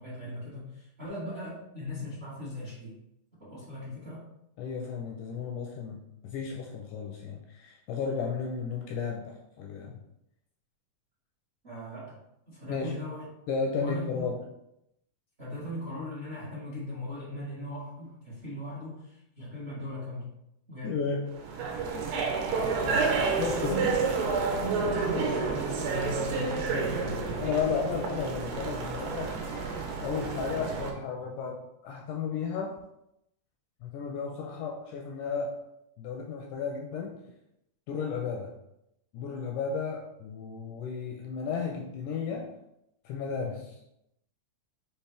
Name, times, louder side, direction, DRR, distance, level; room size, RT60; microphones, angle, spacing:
voice 1, 0.0-3.0 3.4-4.3 11.6-13.2 13.8-14.3 15.4-21.0 22.8-23.2 23.7-23.9 24.3-27.3, left 1 dB, 50° right, -9 dB, 0.7 m, -39 dB
voice 2, 4.6-10.0 12.7-13.0 13.5-14.5 20.8-21.3 23.4-23.8 26.7-29.4 30.0-32.7 33.8-35.6 36.0-37.2 37.9-38.5 39.1-42.5 43.1-43.8, left 5 dB, 80° left, 1 dB, 1.8 m, -33 dB
sound 1, 21.3-30.9, right 4 dB, 85° right, 2.3 m, -30 dB
5.8 x 2.8 x 3.3 m, 0.82 s
omnidirectional pair, 4.0 m